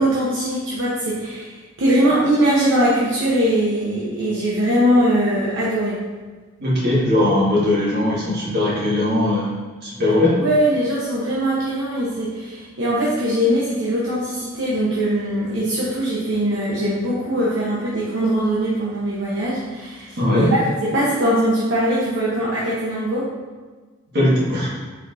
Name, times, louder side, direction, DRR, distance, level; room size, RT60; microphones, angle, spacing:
voice 1, 0.0-6.0 10.4-20.1 20.3-23.2, right 1 dB, 75° right, -7 dB, 0.8 m, -21 dB
voice 2, 6.6-9.5 9.8-10.3 20.2-20.5 24.1-24.7, left 1 dB, 60° right, -7 dB, 1.4 m, -19 dB
4.2 x 4.1 x 2.5 m, 1.4 s
head